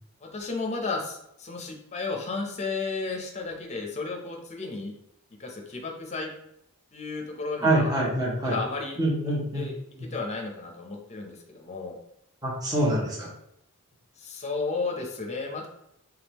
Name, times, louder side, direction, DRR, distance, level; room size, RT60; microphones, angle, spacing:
voice 1, 0.2-4.9 5.4-6.3 6.9-8.0 8.4-9.8 10.0-12.0 14.2-15.7, left 3 dB, 30° left, 2 dB, 0.6 m, -33 dB
voice 2, 7.6-8.6 9.0-9.7 10.0-10.1 12.4-13.3, right 1 dB, 15° right, -6 dB, 0.9 m, -25 dB
3.6 x 3.4 x 3.0 m, 0.77 s
head